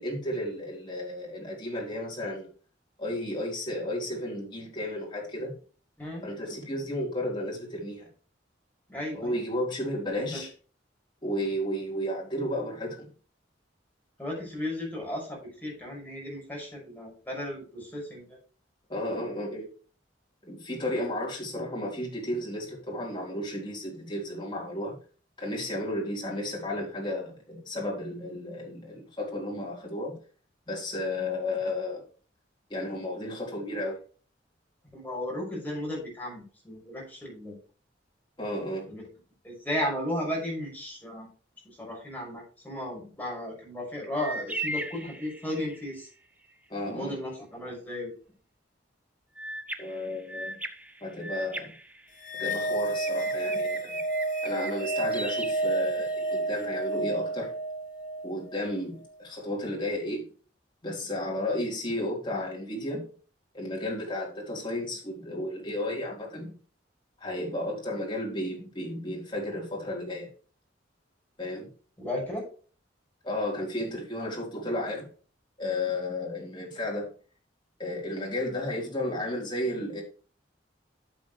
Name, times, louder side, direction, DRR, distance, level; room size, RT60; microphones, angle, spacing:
voice 1, 0.0-2.5 3.0-5.6 6.2-8.1 9.1-10.5 11.2-13.1 18.9-19.7 20.4-25.0 25.4-30.2 30.7-32.0 32.7-34.0 38.4-38.9 46.7-47.1 49.8-50.6 51.0-51.7 52.3-54.0 54.4-57.5 58.2-60.3 60.8-63.1 63.5-66.5 67.2-70.3 71.4-71.7 73.2-75.1 75.6-77.1 77.8-80.0, left 1 dB, 25° left, -2 dB, 3.9 m, -33 dB
voice 2, 8.9-9.3 10.1-10.4 14.2-18.4 34.9-37.6 38.9-39.0 39.4-41.3 41.8-46.1 46.8-48.1 72.0-72.4, left 1 dB, 10° left, -3 dB, 6.0 m, -35 dB
sound 1, 44.2-45.9 49.4-52.5 52.9-56.4, right 2 dB, 10° right, 0.7 m, -38 dB
sound 2, 52.2-58.8, right 2 dB, 45° left, 1.3 m, -30 dB
12.0 x 7.3 x 3.2 m, 0.40 s
head